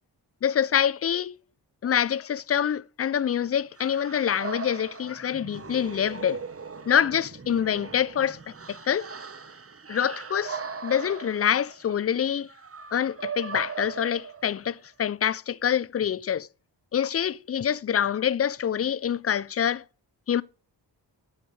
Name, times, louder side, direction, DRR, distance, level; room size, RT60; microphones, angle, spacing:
voice 1, 0.4-1.4 1.8-6.4 6.9-9.1 9.9-12.5 12.9-16.5 16.9-19.8 20.3-20.4, left 9 dB, 35° left, 0.4 m, -26 dB
sound 1, 3.8-14.8, right 5 dB, 30° right, 1.1 m, -39 dB
8.7 x 8.7 x 3.2 m
cardioid pair, 45°, 45 cm